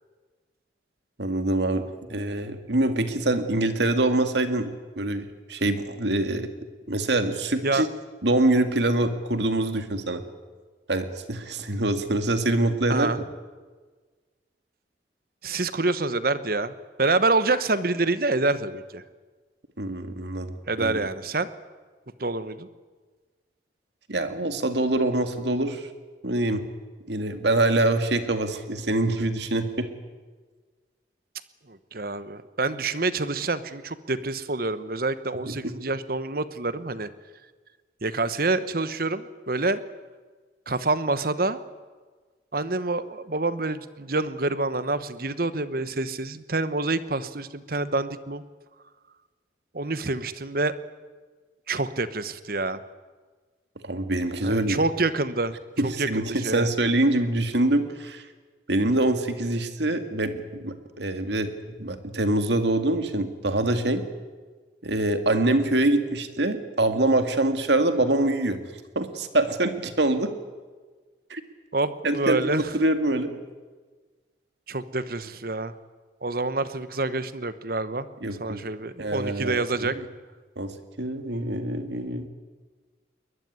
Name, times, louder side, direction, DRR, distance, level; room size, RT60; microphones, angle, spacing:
voice 1, 1.2-6.5 6.9-7.9 8.2-10.2 10.9-13.1 19.8-21.1 24.1-25.9 26.2-26.6 27.1-29.9 35.5-35.7 53.8-54.8 55.8-58.2 58.7-61.5 61.8-64.0 64.8-68.6 69.0-70.3 71.3-71.4 72.0-73.3 78.2-78.6 79.0-80.0 80.6-82.3, right 2 dB, 65° right, 8 dB, 2.1 m, -25 dB
voice 2, 15.4-16.7 17.0-19.0 20.7-21.5 22.2-22.7 31.7-37.1 38.0-39.8 40.7-41.6 42.5-48.4 49.7-50.7 51.7-52.8 54.4-55.6 55.8-56.7 71.7-72.6 74.7-75.7 76.2-78.1 78.4-79.9, right 3 dB, 50° right, 14 dB, 1.1 m, -27 dB
22.0 x 20.5 x 9.6 m, 1.4 s
head